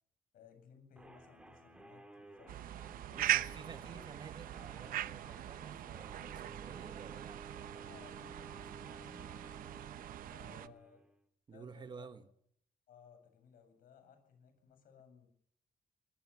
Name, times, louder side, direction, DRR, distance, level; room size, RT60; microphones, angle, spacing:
voice 1, 0.3-2.6 3.1-4.0 7.9-9.9 10.3-11.0 11.5-12.1 12.9-15.3, left 7 dB, 80° left, 7.7 m, -61 dB
sound 1, 1.0-11.2, right 1 dB, 5° right, 4.6 m, -55 dB
sound 2, 2.5-10.7, right 13 dB, 90° right, 0.9 m, -40 dB
voice 2, 3.2-7.5 10.4-10.7 11.5-12.2, right 5 dB, 30° right, 1.4 m, -52 dB
21.5 x 21.5 x 7.2 m
cardioid pair, 155°, 14 cm